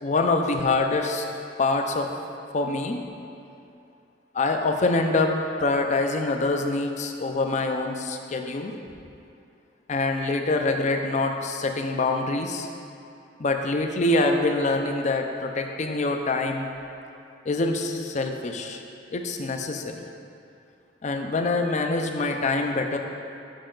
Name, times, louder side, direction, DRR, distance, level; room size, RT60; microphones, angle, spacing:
voice 1, 0.0-1.3 1.6-2.1 2.5-3.0 4.3-8.7 9.9-12.7 13.4-16.7 17.5-18.8 19.1-20.0 21.0-23.0, left 2 dB, 40° left, 4 dB, 0.5 m, -25 dB
6.6 x 6.2 x 3.8 m, 2.7 s
head